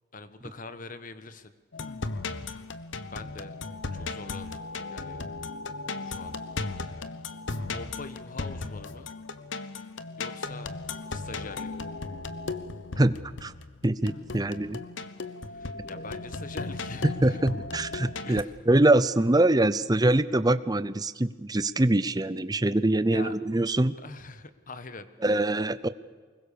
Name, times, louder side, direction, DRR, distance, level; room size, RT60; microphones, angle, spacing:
voice 1, 0.1-1.5 3.0-3.5 3.9-4.6 4.9-5.2 6.0-6.4 6.7-7.2 7.6-9.1 10.2-10.7 11.1-11.7 15.5-17.4 18.2-18.6 23.1-23.3 24.0-25.1, left 3 dB, 40° left, 11 dB, 1.3 m, -43 dB
sound 1, 1.7-18.4, left 3 dB, 65° left, 1.0 m, -36 dB
voice 2, 13.0-13.5 13.8-14.8 17.2-23.9 25.2-25.9, right 1 dB, 20° right, 14 dB, 0.6 m, -24 dB
24.5 x 21.5 x 6.9 m, 1.5 s
head